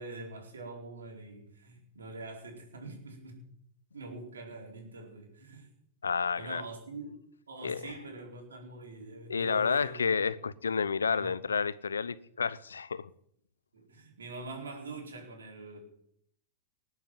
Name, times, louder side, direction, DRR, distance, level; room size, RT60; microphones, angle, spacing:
voice 1, 0.0-3.5 3.9-5.7 6.3-7.1 7.5-10.1 11.1-11.3 13.7-15.8, right 2 dB, 80° right, 4.8 m, -44 dB
voice 2, 6.0-6.6 7.6-7.9 9.3-13.1, left 5 dB, 85° left, 0.7 m, -30 dB
19.5 x 8.2 x 7.6 m
hypercardioid pair, 105°, 0 cm